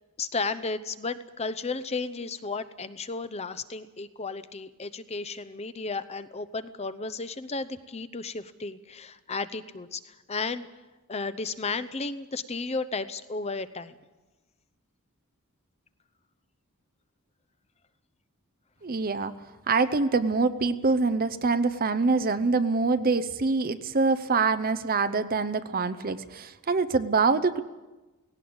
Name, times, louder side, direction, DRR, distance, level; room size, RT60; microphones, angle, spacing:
voice 1, 0.2-10.7 11.1-14.0, left 3 dB, 30° left, 13 dB, 0.8 m, -33 dB
voice 2, 18.8-19.3 19.7-27.6, right 4 dB, 40° right, 11 dB, 0.7 m, -25 dB
17.5 x 17.5 x 8.8 m, 1.1 s
head